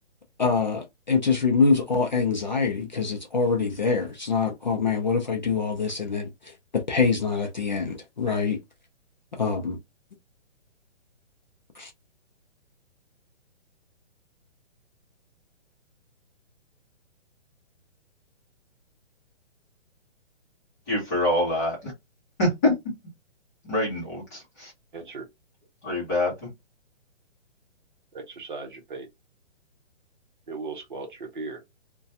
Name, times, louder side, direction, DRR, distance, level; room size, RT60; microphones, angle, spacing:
voice 1, 0.4-6.3 6.7-8.6 9.4-9.8 11.8-11.9, left 5 dB, 40° left, 0.4 m, -24 dB
voice 2, 20.9-21.9 22.4-22.7 23.7-24.7 25.8-26.5, left 1 dB, 15° left, 0.8 m, -25 dB
voice 3, 24.9-25.2 28.1-29.1 30.5-31.6, right 4 dB, 45° right, 0.8 m, -37 dB
2.4 x 2.2 x 2.6 m
hypercardioid pair, 175°, 34 cm